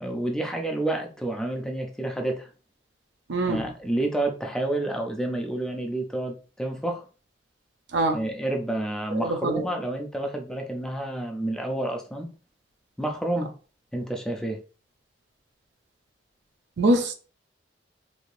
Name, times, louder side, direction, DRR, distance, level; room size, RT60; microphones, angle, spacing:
voice 1, 0.0-2.5 3.5-7.0 8.1-12.3 13.0-13.5 13.9-14.6, right 1 dB, 5° left, 0.4 m, -29 dB
voice 2, 3.3-3.7 7.9-8.3 9.1-9.7 16.8-17.1, right 1 dB, 70° right, 0.5 m, -24 dB
3.3 x 2.7 x 2.5 m
head